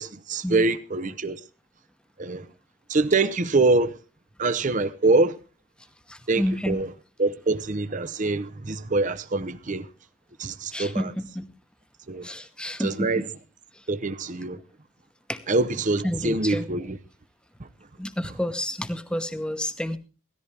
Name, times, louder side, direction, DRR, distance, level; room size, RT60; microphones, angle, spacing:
voice 1, 0.0-1.4 2.2-2.5 2.9-4.0 4.4-5.4 6.3-6.9 7.2-9.9 10.4-11.1 12.1-12.3 12.8-13.3 13.9-14.6 15.5-17.0 17.6-17.7, right 3 dB, 40° right, 0.7 m, -24 dB
voice 2, 6.1-6.8 10.7-11.5 12.2-13.1 15.3-15.4 16.0-16.7 18.0-20.0, equal, 5° left, 1.0 m, -29 dB
17.5 x 14.0 x 3.4 m
head